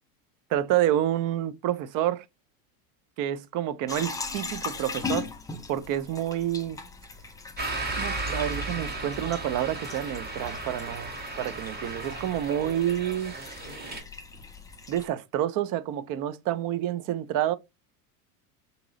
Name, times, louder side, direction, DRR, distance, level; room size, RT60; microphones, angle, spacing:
voice 1, 0.5-2.2 3.2-5.3 5.7-6.8 8.0-11.1 11.4-13.3 14.9-17.6, right 11 dB, 45° right, 0.6 m, -28 dB
sound 1, 3.9-15.1, left 4 dB, 10° left, 0.4 m, -40 dB
sound 2, 7.6-14.0, right 2 dB, 20° right, 1.6 m, -35 dB
4.0 x 2.9 x 3.7 m
supercardioid pair, 120°, 45 cm